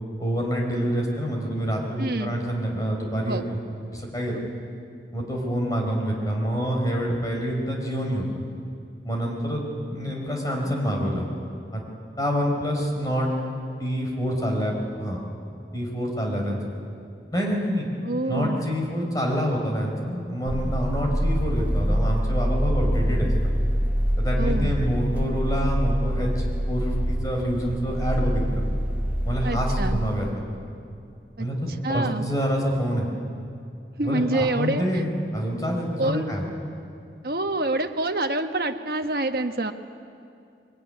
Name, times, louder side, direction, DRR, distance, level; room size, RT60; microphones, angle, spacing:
voice 1, 0.2-3.6 3.9-4.4 5.1-8.3 9.0-9.6 9.9-11.3 11.7-11.8 12.2-13.3 13.8-15.2 15.7-16.6 17.3-17.9 18.3-23.5 24.2-28.6 29.2-30.6 31.4-31.6 31.9-33.1 34.0-36.4, equal, 20° left, 0 dB, 4.2 m, -27 dB
voice 2, 2.0-2.3 3.3-3.5 4.3-4.4 18.0-18.6 24.4-24.7 29.4-30.0 31.4-32.3 34.0-35.0 36.0-36.3 37.2-39.7, right 2 dB, 55° right, 5 dB, 1.3 m, -27 dB
sound 1, 20.5-30.3, equal, 10° right, 0.8 m, -25 dB
22.5 x 21.0 x 9.9 m, 2.5 s
head